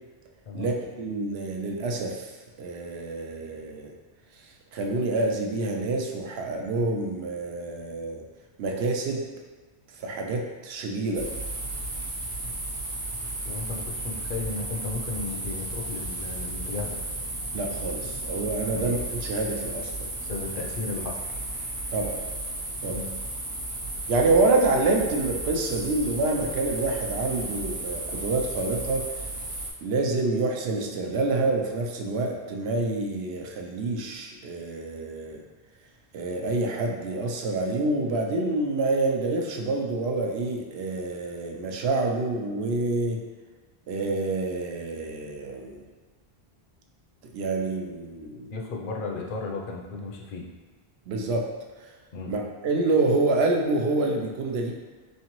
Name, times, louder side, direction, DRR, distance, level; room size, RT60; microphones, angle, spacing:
voice 1, 0.5-2.3 2.6-3.9 4.4-8.2 8.6-9.2 10.0-11.3 17.5-20.1 21.9-22.2 22.8-23.1 24.1-29.1 29.8-35.4 36.1-43.2 43.9-45.9 47.3-48.5 51.1-51.5 51.8-51.9 52.3-54.7, right 2 dB, 75° right, 1 dB, 0.8 m, -27 dB
sound 1, 11.1-29.7, right 2 dB, 35° right, 0.6 m, -34 dB
voice 2, 13.4-17.0 18.7-18.9 20.2-21.2 22.9-23.1 48.5-50.4 52.1-52.4, left 3 dB, 60° left, 0 dB, 0.7 m, -34 dB
3.7 x 3.2 x 3.0 m, 1.4 s
omnidirectional pair, 1.1 m